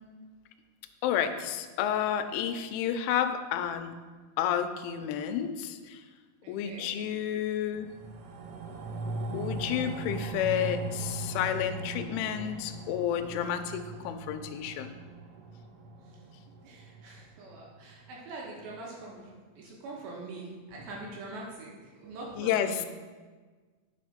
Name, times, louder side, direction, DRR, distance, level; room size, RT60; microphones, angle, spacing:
voice 1, 1.0-4.0 4.4-6.0 6.5-7.9 9.3-14.9 22.4-22.9, left 9 dB, 80° left, 8 dB, 3.0 m, -30 dB
voice 2, 6.4-6.9 16.6-19.3 19.6-22.9, right 2 dB, 70° right, -3 dB, 3.1 m, -43 dB
sound 1, 7.7-18.3 18.7-18.8, right 3 dB, 90° right, 3.4 m, -39 dB
9.8 x 5.3 x 5.0 m, 1.4 s
omnidirectional pair, 5.7 m